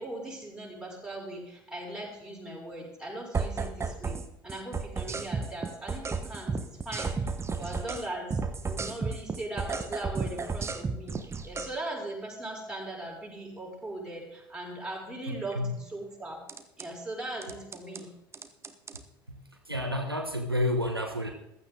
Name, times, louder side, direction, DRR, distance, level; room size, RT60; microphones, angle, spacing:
voice 1, 0.0-11.2 11.4-16.4 16.8-18.1, right 1 dB, 5° right, -4 dB, 6.3 m, -39 dB
sound 1, 3.3-4.2 4.5-8.1 8.3-11.7 16.5-16.9 17.4-18.0 18.3-19.0, right 4 dB, 20° right, 1.3 m, -33 dB
voice 2, 15.3-15.7 19.3-19.4 19.7-21.3, left 1 dB, 90° right, 4 dB, 1.2 m, -30 dB
15.5 x 13.0 x 3.9 m, 0.83 s
figure-of-eight pair, 60°, 12 cm